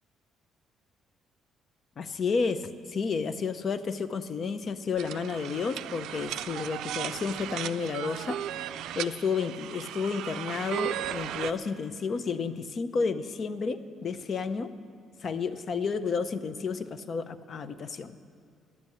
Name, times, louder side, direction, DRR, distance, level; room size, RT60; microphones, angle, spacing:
voice 1, 2.0-8.4 9.0-14.7 15.2-18.2, left 5 dB, 45° left, 12 dB, 0.6 m, -31 dB
sound 1, 5.0-11.5, right 11 dB, 80° right, 0.3 m, -36 dB
10.5 x 8.1 x 9.8 m, 2.3 s
cardioid pair, 105°, 0 cm